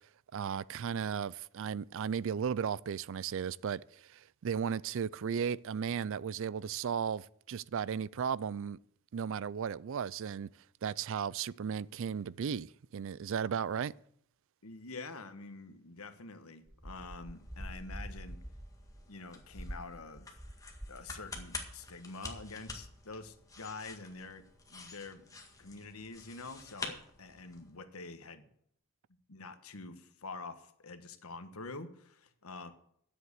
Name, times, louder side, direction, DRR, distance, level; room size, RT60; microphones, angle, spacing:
voice 1, 0.3-8.8 9.1-10.5 10.8-13.9, right 7 dB, 65° right, 0.4 m, -35 dB
voice 2, 14.6-18.4 19.1-20.4 20.9-24.4 24.7-25.2 25.6-28.4 29.3-32.7, left 3 dB, 90° left, 1.3 m, -46 dB
sound 1, 16.7-21.0 21.3-21.7, equal, 5° right, 0.5 m, -46 dB
sound 2, 17.0-27.7, left 3 dB, 15° left, 1.8 m, -48 dB
10.5 x 7.9 x 8.2 m
head